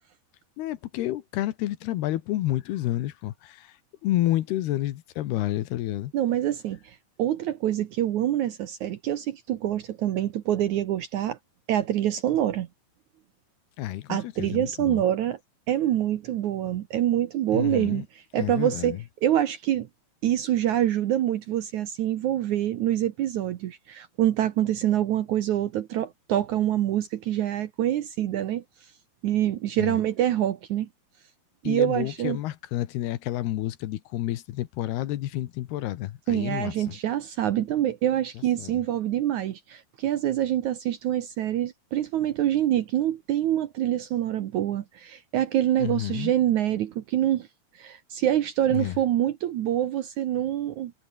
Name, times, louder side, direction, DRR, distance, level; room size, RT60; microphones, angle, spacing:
voice 1, 0.6-3.7 4.0-6.1 13.8-15.0 17.5-18.0 18.4-19.0 29.8-30.0 31.6-36.7 38.6-38.8 45.8-46.3 48.7-48.9, left 14 dB, 80° left, 3.2 m, -29 dB
voice 2, 6.1-11.4 11.7-12.7 14.1-15.4 15.7-19.9 20.2-28.6 29.2-30.9 31.6-32.4 36.3-47.5 47.8-50.9, right 12 dB, 70° right, 1.9 m, -26 dB
omnidirectional pair, 4.6 m